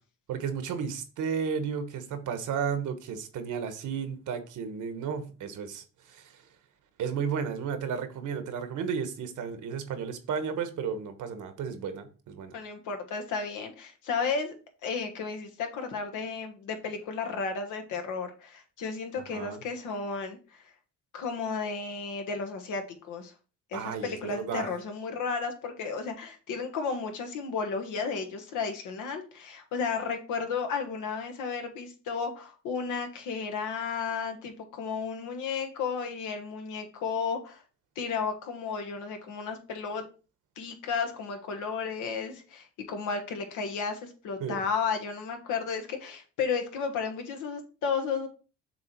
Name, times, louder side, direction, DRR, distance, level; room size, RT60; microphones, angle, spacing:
voice 1, 0.3-6.4 7.0-12.5 19.3-19.6 23.7-24.7 44.4-44.6, right 6 dB, 80° right, 1.2 m, -33 dB
voice 2, 12.5-14.5 14.8-20.4 21.1-23.3 23.7-37.6 37.9-40.1 40.6-48.3, left 5 dB, 85° left, 1.4 m, -33 dB
7.0 x 3.2 x 4.5 m
cardioid pair, 90°, 30 cm